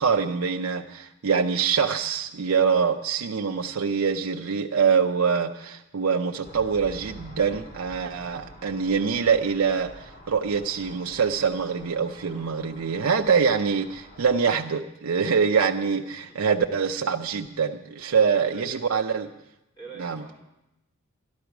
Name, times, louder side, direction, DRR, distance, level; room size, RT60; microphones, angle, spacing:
voice 1, 0.0-19.3 20.0-20.2, right 6 dB, 70° right, 3 dB, 0.5 m, -24 dB
sound 1, 6.4-14.6, equal, 40° left, 1.4 m, -47 dB
voice 2, 18.1-18.8 19.1-19.4 19.8-20.4, right 3 dB, 20° left, -2 dB, 3.4 m, -45 dB
12.5 x 11.5 x 5.9 m, 0.92 s
head